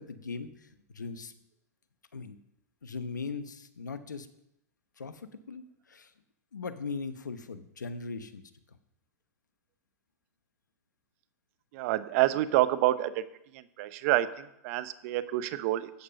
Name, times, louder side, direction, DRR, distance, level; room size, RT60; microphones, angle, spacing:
voice 1, 0.0-1.3 2.1-2.4 2.8-4.3 5.0-6.1 6.5-8.4 8.7-8.8, left 4 dB, 90° left, 11 dB, 1.1 m, -39 dB
voice 2, 11.7-13.2 13.8-15.9, right 15 dB, 50° right, 14 dB, 0.9 m, -27 dB
13.5 x 8.8 x 5.4 m, 0.82 s
hypercardioid pair, 105°, 10 cm